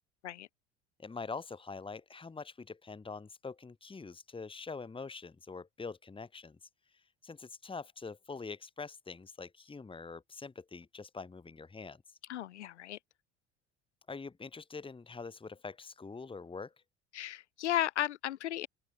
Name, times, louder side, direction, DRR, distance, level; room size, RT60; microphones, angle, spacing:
voice 1, 1.0-6.7 7.2-12.2 14.1-16.7, left 4 dB, 15° left, 2.0 m, -44 dB
voice 2, 12.3-13.0 17.1-18.7, left 13 dB, 75° left, 1.2 m, -34 dB
open air
figure-of-eight pair, 60°, 35 cm